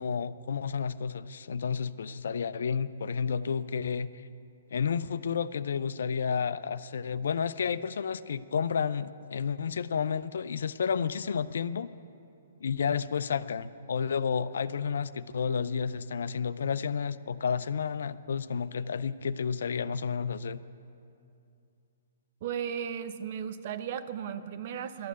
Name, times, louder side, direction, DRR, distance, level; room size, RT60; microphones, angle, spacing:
voice 1, 0.0-4.3 4.7-11.9 12.6-20.6, left 6 dB, 60° left, 15 dB, 0.4 m, -31 dB
voice 2, 22.4-25.1, right 8 dB, 40° right, 11 dB, 0.7 m, -35 dB
12.5 x 9.2 x 9.5 m, 2.6 s
figure-of-eight pair, 120°, 0 cm